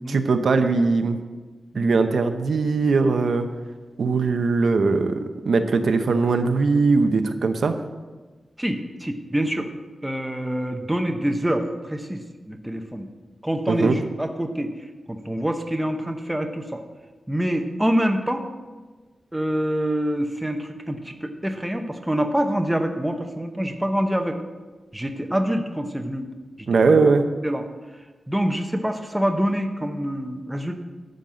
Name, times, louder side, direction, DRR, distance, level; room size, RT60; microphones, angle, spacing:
voice 1, 0.1-1.2 1.7-3.5 4.0-7.7 13.7-13.9 26.7-27.2, right 4 dB, 70° right, 7 dB, 0.8 m, -20 dB
voice 2, 8.6-9.7 10.0-13.1 13.4-14.7 15.1-16.8 17.3-18.4 19.3-24.4 24.9-26.3 26.6-27.0 27.4-27.6 28.3-30.7, equal, 5° right, 5 dB, 0.8 m, -26 dB
12.0 x 5.4 x 7.5 m, 1.3 s
wide cardioid pair, 175°, 0 cm